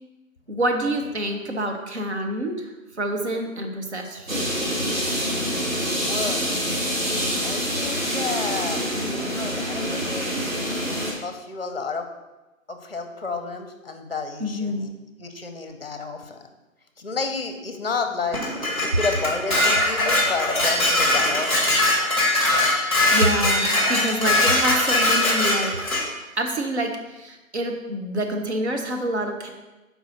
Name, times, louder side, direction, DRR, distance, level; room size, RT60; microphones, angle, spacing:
voice 1, 0.5-2.7 3.0-4.5 14.4-14.9 23.1-25.7 26.4-29.5, right 1 dB, 55° right, 3 dB, 0.8 m, -27 dB
sound 1, 4.3-11.1, equal, 70° right, 2.0 m, -26 dB
voice 2, 6.1-6.4 7.4-12.1 12.7-14.9 15.2-16.5 17.0-18.5 18.8-21.8, left 4 dB, 45° left, 6 dB, 0.7 m, -31 dB
Dishes pots and pans, 18.3-26.0, left 1 dB, 20° right, 1.0 m, -21 dB
4.6 x 4.0 x 5.4 m, 1.1 s
figure-of-eight pair, 175°, 41 cm